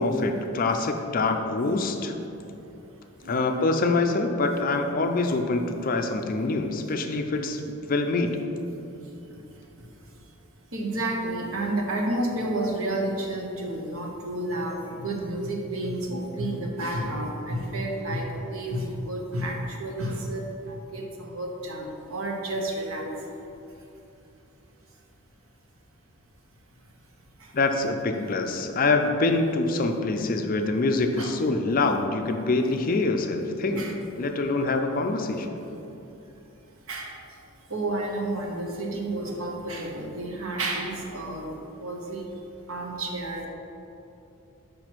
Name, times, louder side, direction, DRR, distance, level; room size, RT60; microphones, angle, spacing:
voice 1, 0.0-2.1 3.3-7.6 7.9-8.4 27.5-33.9 34.2-35.6, left 3 dB, 40° left, 5 dB, 0.4 m, -25 dB
voice 2, 10.7-23.0 31.2-31.3 33.7-33.9 36.9-37.1 37.7-41.5 41.8-42.2 42.7-43.5, right 1 dB, 70° right, 0 dB, 1.0 m, -30 dB
6.0 x 5.1 x 4.5 m, 2.9 s
head